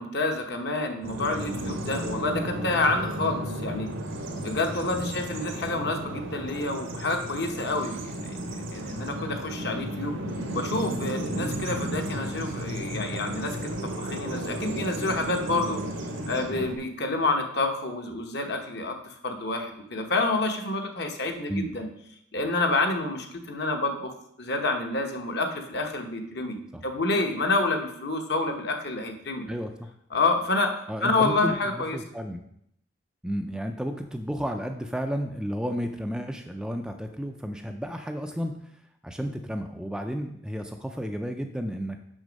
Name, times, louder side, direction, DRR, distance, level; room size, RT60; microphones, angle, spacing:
voice 1, 0.0-3.9 4.4-10.2 10.5-15.8 16.3-19.0 19.2-21.9 22.3-29.5 30.1-30.7 31.0-32.0, left 2 dB, 55° left, 4 dB, 1.0 m, -28 dB
Bird vocalization bird call bird song, 1.0-16.8, right 1 dB, 90° right, 1.4 m, -33 dB
voice 2, 29.5-29.9 30.9-32.4 33.2-42.0, equal, 5° right, 5 dB, 0.4 m, -32 dB
6.3 x 6.2 x 5.1 m, 0.75 s
head